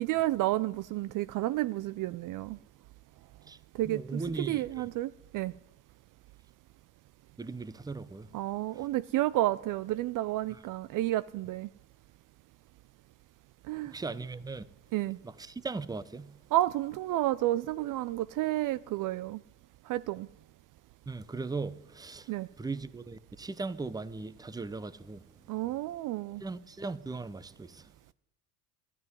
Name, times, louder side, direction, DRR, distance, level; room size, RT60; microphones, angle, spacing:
voice 1, 0.0-2.6 3.7-5.5 8.3-11.7 13.7-13.9 14.9-15.2 16.5-19.4 19.9-20.3 22.3-22.5 25.5-26.4, right 15 dB, 50° right, 0.5 m, -31 dB
voice 2, 3.8-4.6 7.4-8.3 13.9-14.6 15.2-16.3 21.1-22.3 22.6-25.2 26.4-27.8, right 3 dB, 10° right, 0.7 m, -38 dB
12.5 x 9.6 x 9.6 m
hypercardioid pair, 70°, 43 cm